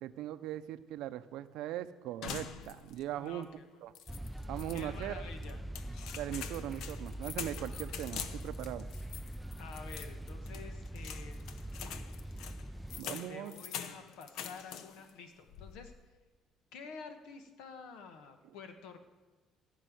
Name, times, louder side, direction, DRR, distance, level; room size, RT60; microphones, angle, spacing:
voice 1, 0.0-3.5 3.8-3.9 4.5-5.2 6.2-8.9 13.0-13.5, right 13 dB, 75° right, 12 dB, 0.6 m, -40 dB
sound 1, 2.2-3.1 3.4-3.5 4.0-4.8 5.4-15.1 15.5-16.0, left 8 dB, 70° left, 0.8 m, -45 dB
voice 2, 3.2-3.6 4.7-5.6 9.6-12.3 13.3-15.9 16.7-19.0, left 5 dB, 85° left, 7 dB, 1.4 m, -50 dB
sound 2, 4.1-13.0, right 1 dB, 5° right, 0.3 m, -43 dB
14.5 x 5.5 x 9.3 m, 1.3 s
cardioid pair, 130°, 0 cm